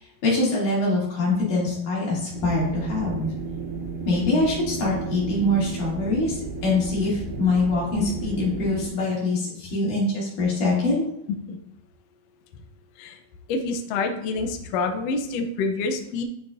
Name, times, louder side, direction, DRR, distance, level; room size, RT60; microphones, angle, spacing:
voice 1, 0.2-3.3 4.1-11.1, left 2 dB, 70° left, -5 dB, 3.6 m, -24 dB
sound 1, 2.3-8.9, right 4 dB, 90° right, 2.6 m, -33 dB
voice 2, 13.5-16.2, left 3 dB, 90° left, 5 dB, 1.4 m, -27 dB
11.0 x 3.9 x 2.5 m, 0.76 s
omnidirectional pair, 3.8 m